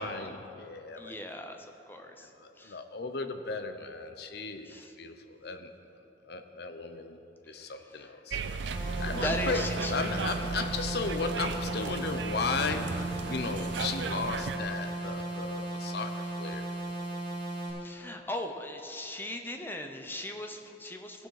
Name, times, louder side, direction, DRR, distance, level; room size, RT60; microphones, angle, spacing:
voice 1, 0.0-1.2 2.2-5.7 6.2-7.2 7.4-8.4 9.0-16.7, left 4 dB, 60° left, 7 dB, 0.7 m, -35 dB
voice 2, 1.0-1.6 1.9-2.3 2.6-2.8 4.7-4.9 8.0-8.1 9.2-9.9 17.8-21.3, left 1 dB, 10° left, 4 dB, 0.7 m, -38 dB
sound 1, 8.3-14.6, right 4 dB, 85° right, 0.5 m, -35 dB
sound 2, 8.7-17.7, right 2 dB, 25° left, 2.8 m, -36 dB
17.0 x 6.5 x 4.8 m, 2.9 s
head